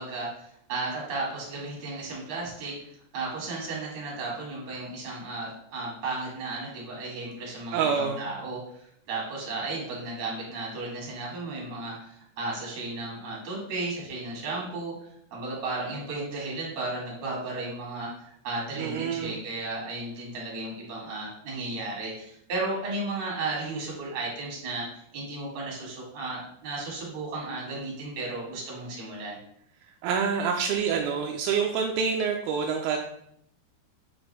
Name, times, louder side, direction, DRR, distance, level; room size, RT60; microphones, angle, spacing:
voice 1, 0.0-18.1 18.4-24.9 25.1-29.4, right 2 dB, 45° right, -4 dB, 2.8 m, -34 dB
voice 2, 7.7-8.3 18.8-19.4 30.0-33.0, right 6 dB, 85° right, 2 dB, 2.1 m, -27 dB
7.6 x 4.2 x 3.4 m, 0.70 s
omnidirectional pair, 5.0 m